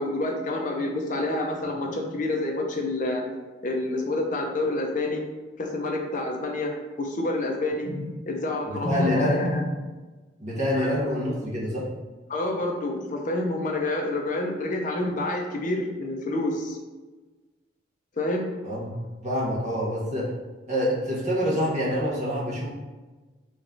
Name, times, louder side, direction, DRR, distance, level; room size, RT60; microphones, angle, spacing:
voice 1, 0.0-3.2 3.6-5.2 5.6-9.6 10.7-10.9 12.3-16.8 18.2-18.5, left 2 dB, 45° left, 1 dB, 0.5 m, -28 dB
voice 2, 8.7-9.4 10.4-11.9 18.6-20.3 20.7-22.7, equal, 40° right, -5 dB, 1.1 m, -26 dB
3.5 x 3.0 x 3.8 m, 1.2 s
head